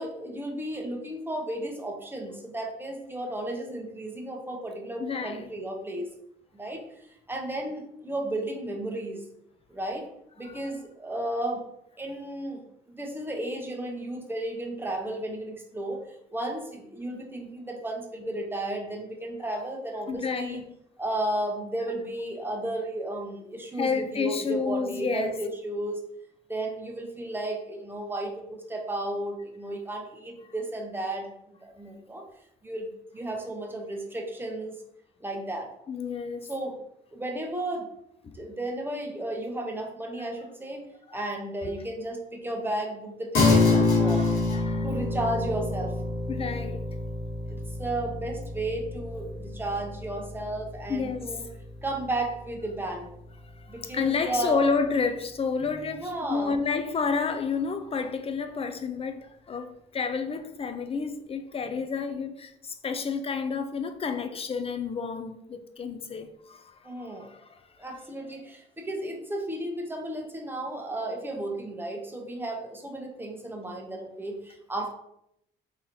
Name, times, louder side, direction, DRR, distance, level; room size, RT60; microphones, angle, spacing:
voice 1, 0.0-6.1 6.5-6.9 7.3-9.2 9.7-10.1 10.4-11.6 12.0-20.6 21.0-26.0 26.5-31.3 31.6-32.2 32.6-34.8 35.2-35.7 36.4-36.8 37.1-37.9 38.3-40.8 41.1-44.4 44.8-45.9 47.5-51.5 51.8-53.1 53.7-54.6 55.9-56.5 66.8-67.3 67.8-74.9, right 1 dB, 10° right, 0.8 m, -33 dB
voice 2, 5.0-5.5 10.4-10.6 20.1-20.7 23.8-25.4 35.9-36.5 38.2-38.3 40.2-40.3 41.1-41.2 43.6-44.9 46.3-46.8 50.9-51.4 53.6-67.6, left 5 dB, 30° left, 0.4 m, -30 dB
sound 1, 43.3-53.1, left 3 dB, 75° left, 1.4 m, -27 dB
3.9 x 2.9 x 2.9 m
cardioid pair, 90°, 20 cm